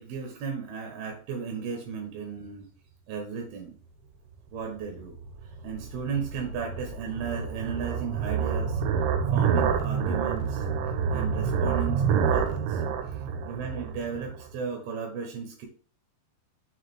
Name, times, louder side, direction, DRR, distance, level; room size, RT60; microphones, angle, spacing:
voice 1, 0.0-2.7 3.1-3.8 4.5-5.1 5.4-8.8 9.3-10.7 11.1-12.8 13.4-15.7, right 6 dB, 70° right, 2 dB, 2.8 m, -35 dB
sound 1, 4.9-14.5, right 6 dB, 90° right, 3.0 m, -28 dB
6.4 x 4.8 x 4.5 m, 0.43 s
omnidirectional pair, 5.3 m